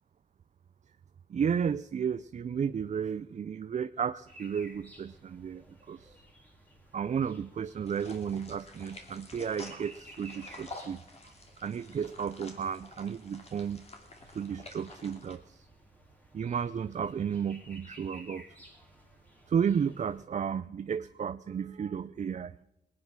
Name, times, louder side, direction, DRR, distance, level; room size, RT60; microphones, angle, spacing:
voice 1, 1.3-6.2 6.9-11.0 11.6-13.9 14.3-15.7 16.3-18.5 19.5-22.5, right 7 dB, 40° right, 13 dB, 0.4 m, -33 dB
sound 1, 4.3-20.2, right 1 dB, 10° left, 2.7 m, -56 dB
sound 2, 7.9-15.4, left 2 dB, 35° left, 2.6 m, -49 dB
19.5 x 9.4 x 6.1 m, 0.89 s
cardioid pair, 95°, 18 cm